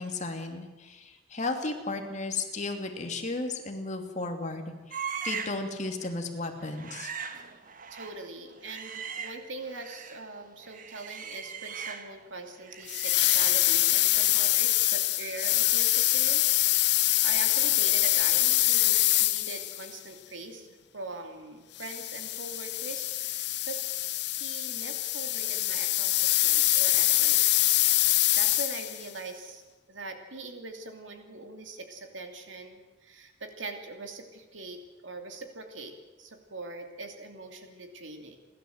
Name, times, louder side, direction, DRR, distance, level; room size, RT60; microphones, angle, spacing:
voice 1, 0.0-7.1, left 3 dB, 40° left, 4 dB, 2.5 m, -34 dB
sound 1, 4.9-5.7 6.0-6.2 6.6-10.3 10.6-12.3 12.6-16.3 16.6-16.8, right 7 dB, 45° right, 1.5 m, -41 dB
voice 2, 7.9-20.7 20.9-23.8 24.3-27.6 28.3-29.6 29.9-38.4, right 3 dB, 90° right, 5 dB, 2.7 m, -42 dB
sound 2, 12.9-19.9 21.8-29.0, left 16 dB, 65° left, 0.8 m, -25 dB
30.0 x 12.0 x 8.0 m, 1.2 s
head